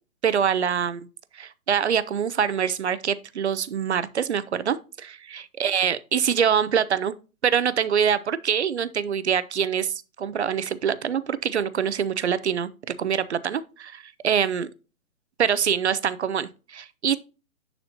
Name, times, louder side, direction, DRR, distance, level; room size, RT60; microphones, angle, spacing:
voice 1, 0.2-1.1 1.3-7.1 7.4-12.7 13.0-14.7 15.4-17.2, right 8 dB, 55° right, 0.4 m, -25 dB
11.0 x 4.2 x 2.8 m
hypercardioid pair, 175°, 43 cm